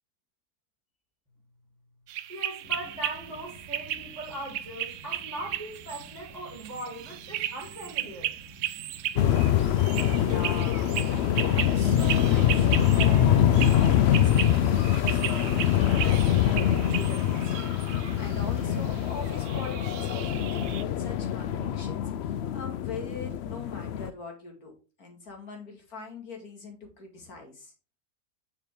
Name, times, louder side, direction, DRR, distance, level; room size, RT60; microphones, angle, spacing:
sound 1, 2.1-20.8, right 11 dB, 70° right, 0.8 m, -36 dB
voice 1, 2.3-8.3, right 1 dB, 10° left, 3.2 m, -39 dB
sound 2, 2.6-19.2, right 2 dB, 50° right, 1.6 m, -51 dB
sound 3, 9.2-24.1, left 10 dB, 65° left, 0.7 m, -24 dB
voice 2, 10.1-24.7 25.0-27.7, left 3 dB, 80° left, 2.7 m, -43 dB
7.0 x 5.8 x 3.6 m
omnidirectional pair, 1.5 m